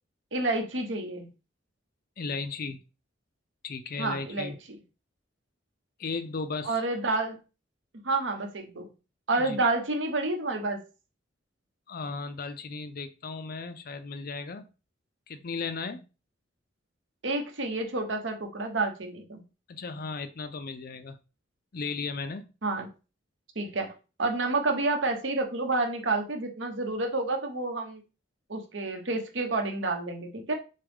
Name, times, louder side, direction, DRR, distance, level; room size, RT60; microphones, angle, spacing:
voice 1, 0.3-1.3 4.0-4.5 6.6-7.4 8.0-8.9 9.3-10.8 17.2-19.4 22.6-22.9 23.5-23.9 24.2-28.0 28.5-30.5, right 2 dB, 70° right, 4 dB, 1.0 m, -29 dB
voice 2, 2.2-2.8 3.6-4.6 6.0-6.8 9.4-9.6 11.9-14.7 15.3-16.1 19.7-21.2 21.7-22.5, left 4 dB, 50° left, 11 dB, 0.5 m, -35 dB
6.5 x 2.3 x 3.5 m, 0.31 s
head